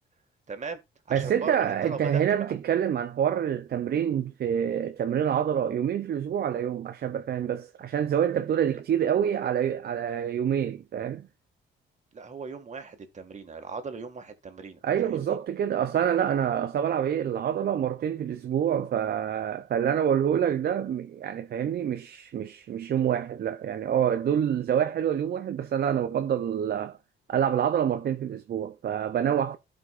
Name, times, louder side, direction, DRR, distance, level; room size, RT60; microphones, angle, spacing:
voice 1, 0.5-0.8 1.1-2.6 12.1-15.4, right 4 dB, 35° right, 1.9 m, -38 dB
voice 2, 1.1-11.3 14.8-27.0 27.3-29.6, right 9 dB, 55° right, 0.6 m, -27 dB
13.5 x 5.2 x 2.5 m
cardioid pair, 90°, 20 cm